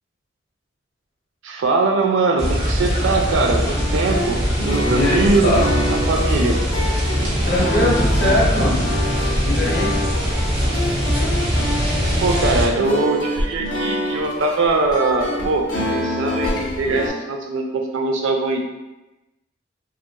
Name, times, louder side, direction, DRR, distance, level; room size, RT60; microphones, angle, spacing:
voice 1, 1.4-6.6 12.2-18.6, right 3 dB, 75° right, 2 dB, 0.4 m, -21 dB
sound 1, 2.4-12.7, equal, 30° right, 0.7 m, -21 dB
sound 2, 3.7-17.1, left 1 dB, 80° left, 0.5 m, -27 dB
voice 2, 4.8-5.7 7.4-9.0 9.3-10.0, left 1 dB, 55° left, -5 dB, 0.9 m, -21 dB
2.8 x 2.5 x 2.2 m, 1.0 s
head